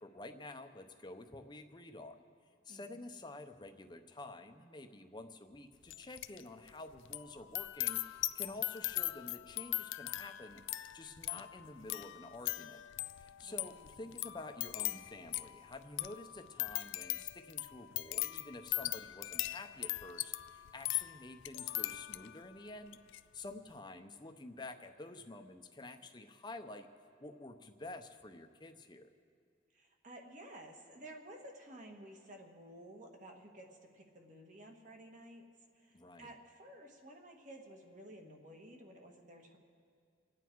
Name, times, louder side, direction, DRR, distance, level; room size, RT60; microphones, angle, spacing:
voice 1, 0.0-2.2 2.6-10.6 10.9-12.8 13.2-23.0 23.3-26.9 27.2-29.1 35.9-36.3, left 2 dB, 25° left, 7 dB, 0.7 m, -49 dB
voice 2, 2.7-3.0 13.4-13.7 29.7-35.4 35.7-39.6, right 1 dB, 40° right, 2 dB, 1.6 m, -53 dB
sound 1, 5.9-6.4 6.7-22.4 22.9-23.2, left 17 dB, 85° left, 0.4 m, -40 dB
28.0 x 9.3 x 4.6 m, 2.2 s
head